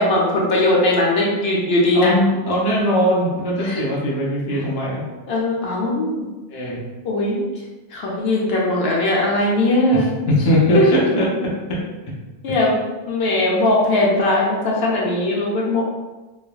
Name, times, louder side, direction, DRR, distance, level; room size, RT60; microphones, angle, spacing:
voice 1, 0.0-2.1 3.6-3.8 5.3-6.3 7.0-7.4 7.9-10.1 10.7-10.8 12.4-15.8, left 2 dB, 75° left, -3 dB, 0.9 m, -19 dB
voice 2, 1.9-5.1 6.5-6.8 9.9-12.1 12.5-12.6, equal, 30° left, -4 dB, 0.5 m, -20 dB
3.2 x 2.1 x 2.3 m, 1.2 s
omnidirectional pair, 1.1 m